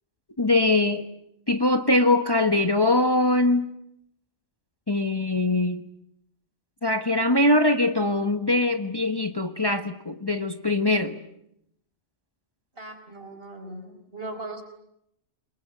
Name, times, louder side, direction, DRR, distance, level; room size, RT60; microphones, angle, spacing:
voice 1, 0.4-1.1 1.5-3.7 4.9-5.9 6.8-11.2, left 2 dB, 20° left, 7 dB, 1.3 m, -22 dB
voice 2, 12.8-14.6, right 2 dB, 50° right, 6 dB, 4.9 m, -38 dB
28.0 x 21.5 x 9.2 m, 0.77 s
omnidirectional pair, 1.2 m